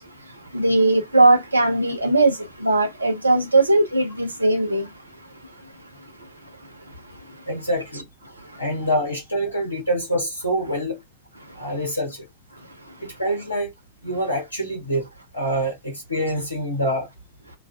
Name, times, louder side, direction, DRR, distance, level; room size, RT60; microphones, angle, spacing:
voice 1, 0.5-2.3 2.6-4.8, right 2 dB, 80° right, 0.5 m, -18 dB
voice 2, 7.5-8.0 8.6-11.0 11.6-12.3 13.0-13.7 14.0-15.1 15.3-17.1, equal, 85° left, 0.7 m, -25 dB
2.4 x 2.3 x 2.3 m
figure-of-eight pair, 90°, 0 cm